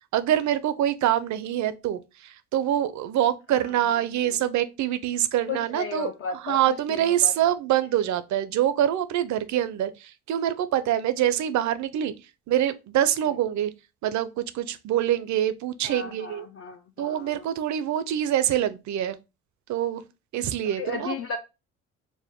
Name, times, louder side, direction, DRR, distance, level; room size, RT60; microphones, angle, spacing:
voice 1, 0.1-12.1 12.5-13.7 14.0-16.5 17.0-19.2 19.7-20.0 20.3-21.1, right 11 dB, 70° right, 0.5 m, -25 dB
voice 2, 5.5-7.5 15.8-17.4 20.6-21.4, left 5 dB, 50° left, 0.5 m, -35 dB
4.8 x 2.1 x 3.6 m
cardioid pair, 90°, 30 cm